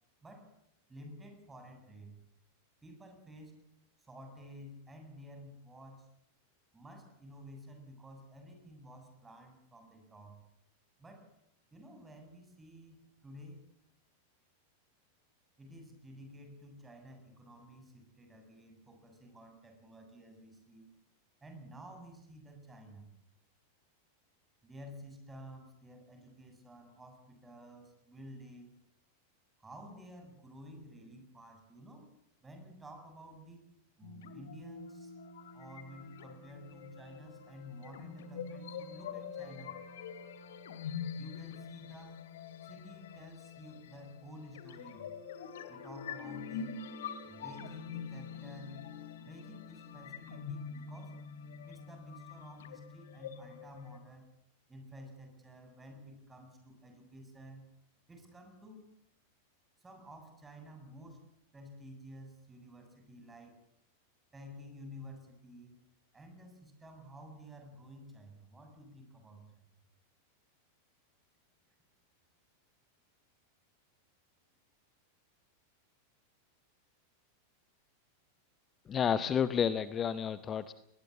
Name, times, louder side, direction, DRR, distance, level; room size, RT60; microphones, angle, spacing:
voice 1, 0.9-2.1 2.8-3.6 4.0-6.1 6.7-10.4 11.0-11.3 11.7-13.6 15.6-20.9 21.4-23.1 24.6-28.7 29.6-32.1 32.4-33.7 34.0-35.1 35.5-39.7 41.2-42.2 42.6-45.1 45.7-46.8 47.2-48.9 49.2-51.2 51.7-54.3 54.7-57.6 58.1-58.8 59.8-61.2 61.5-63.5 64.3-65.8 66.1-69.7, equal, 10° right, 5 dB, 7.2 m, -52 dB
sound 1, 34.0-54.0, left 6 dB, 60° left, 2.4 m, -45 dB
voice 2, 78.9-80.7, left 8 dB, 25° left, 15 dB, 0.8 m, -30 dB
22.0 x 19.5 x 8.6 m, 0.79 s
figure-of-eight pair, 90°, 0 cm